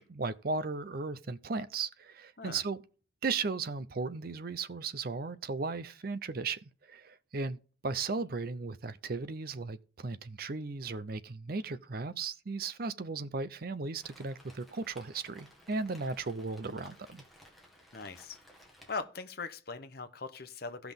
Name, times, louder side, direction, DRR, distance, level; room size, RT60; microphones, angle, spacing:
voice 1, 0.0-2.8 3.2-17.2, right 4 dB, 50° right, 0.5 m, -36 dB
Rain, 14.0-19.0, equal, ahead, 1.8 m, -57 dB
voice 2, 17.9-18.4 18.9-20.9, left 4 dB, 50° left, 0.8 m, -40 dB
16.0 x 5.9 x 3.6 m
head